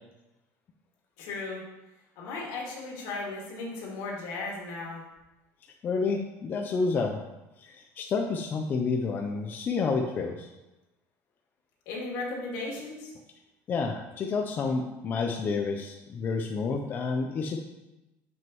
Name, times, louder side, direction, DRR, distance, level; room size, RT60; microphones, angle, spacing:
voice 1, 1.2-1.6 2.2-5.0 11.9-13.1, left 3 dB, 75° left, -2 dB, 2.2 m, -36 dB
voice 2, 5.8-7.2 7.6-10.5 13.7-17.6, left 4 dB, 30° left, 2 dB, 0.5 m, -29 dB
7.2 x 6.1 x 3.0 m, 1.0 s
cardioid pair, 150°, 6 cm